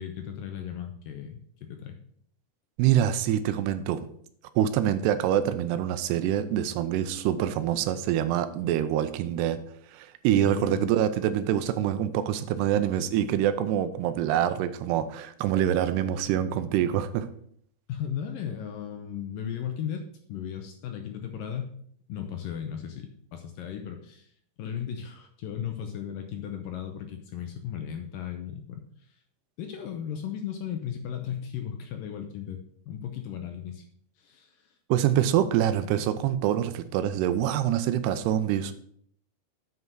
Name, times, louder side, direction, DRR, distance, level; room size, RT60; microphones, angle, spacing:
voice 1, 0.0-2.0 10.4-10.8 17.9-20.0 20.3-21.7 22.1-24.3 24.6-29.2 29.6-32.6 32.9-33.8 34.2-34.7, left 9 dB, 75° left, 5 dB, 2.2 m, -36 dB
voice 2, 2.8-4.1 4.6-9.6 9.9-17.3 34.9-38.7, right 10 dB, 85° right, 11 dB, 2.8 m, -25 dB
7.8 x 5.6 x 6.1 m, 0.64 s
omnidirectional pair, 4.6 m